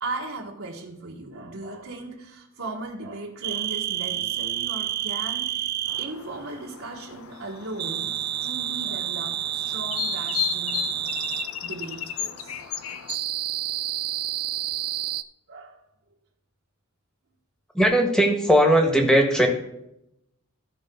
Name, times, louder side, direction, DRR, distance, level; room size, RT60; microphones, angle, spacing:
voice 1, 0.0-5.7 6.0-11.0 11.6-12.6 15.5-15.8, right 2 dB, 65° right, 1.5 m, -37 dB
sound 1, 3.4-6.2 7.8-11.5 13.1-15.2, right 12 dB, 45° right, 0.4 m, -29 dB
sound 2, 5.9-13.2, left 10 dB, 70° left, 0.7 m, -35 dB
voice 2, 17.7-19.5, equal, 5° left, 1.6 m, -18 dB
16.0 x 5.3 x 3.8 m
head